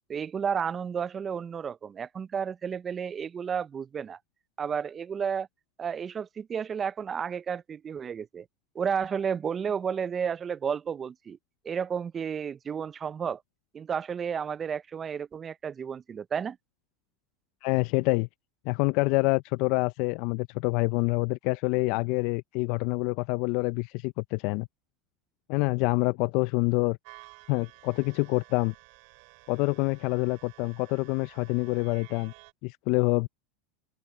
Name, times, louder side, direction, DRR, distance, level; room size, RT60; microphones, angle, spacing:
voice 1, 0.1-4.2 4.6-5.5 5.8-8.5 8.7-11.4 11.6-13.4 13.7-16.6, right 7 dB, 25° right, 0.4 m, -32 dB
voice 2, 17.6-18.3 18.7-24.7 25.5-27.0 27.5-28.7 29.5-32.3 32.6-33.3, left 26 dB, 60° left, 0.4 m, -26 dB
sound 1, 27.0-32.5, right 31 dB, 65° right, 2.4 m, -53 dB
open air
supercardioid pair, 115°, 0 cm